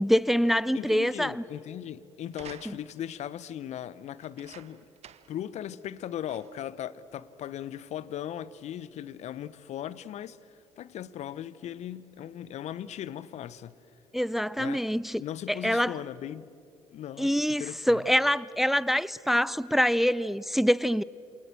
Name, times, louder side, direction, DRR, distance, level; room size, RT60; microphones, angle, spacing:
voice 1, 0.0-1.4 2.7-2.8 14.1-15.2 15.5-15.9 17.2-21.0, equal, ahead, 0.6 m, -25 dB
voice 2, 0.7-4.9 5.3-13.8 14.6-14.9 15.2-16.5 16.9-18.0, left 11 dB, 55° left, 0.9 m, -38 dB
sound 1, 2.3-3.1 4.2-5.4 5.8-5.9 6.3-6.7 7.5-7.6, right 9 dB, 50° right, 1.3 m, -50 dB
28.0 x 27.5 x 7.7 m
hypercardioid pair, 55°, 14 cm